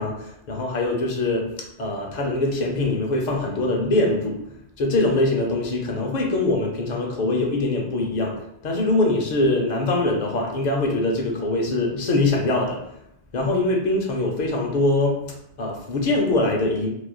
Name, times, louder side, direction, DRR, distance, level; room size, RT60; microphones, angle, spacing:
voice 1, 0.0-1.5 1.8-4.4 4.8-12.8 13.3-16.9, left 2 dB, 50° left, 0 dB, 0.6 m, -23 dB
3.0 x 2.3 x 2.2 m, 0.77 s
omnidirectional pair, 1.1 m